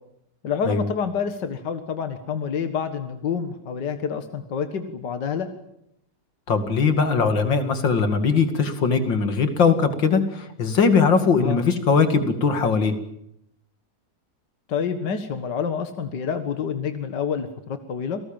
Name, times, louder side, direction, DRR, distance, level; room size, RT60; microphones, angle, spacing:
voice 1, 0.4-5.5 11.4-11.6 14.7-18.2, left 6 dB, 70° left, 8 dB, 2.2 m, -28 dB
voice 2, 6.5-12.9, left 5 dB, 85° left, 8 dB, 3.0 m, -20 dB
28.5 x 19.0 x 9.0 m, 0.78 s
omnidirectional pair, 2.0 m